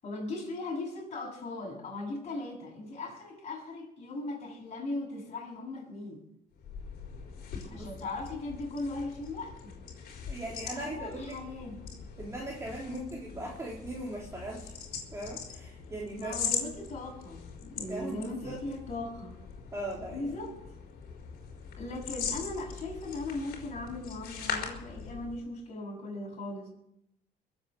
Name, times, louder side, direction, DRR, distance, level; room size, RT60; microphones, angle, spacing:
voice 1, 0.0-6.2 7.7-9.8 10.7-12.1 12.9-13.1 16.2-19.4 20.1-20.5 21.8-26.7, left 2 dB, 40° left, -2 dB, 7.5 m, -38 dB
sound 1, 6.5-25.4, left 6 dB, 65° left, 4.3 m, -41 dB
voice 2, 10.3-11.4 12.2-14.7 15.1-16.5 17.9-18.6 19.7-20.3, right 1 dB, 15° right, -3 dB, 3.5 m, -39 dB
22.0 x 8.1 x 7.9 m, 0.80 s
cardioid pair, 110°, 17 cm